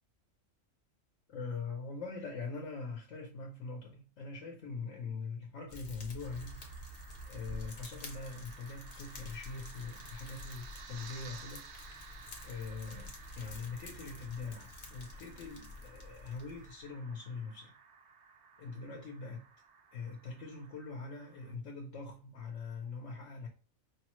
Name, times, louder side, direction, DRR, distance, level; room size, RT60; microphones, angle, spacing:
voice 1, 1.3-6.7 7.3-17.7 18.6-19.5 19.9-23.5, left 4 dB, 70° left, 1.2 m, -43 dB
Fire, 5.7-16.8, left 2 dB, 45° left, 1.0 m, -49 dB
sound 1, 6.2-21.5, right 6 dB, 65° right, 0.8 m, -55 dB
5.0 x 2.1 x 3.0 m
omnidirectional pair, 1.4 m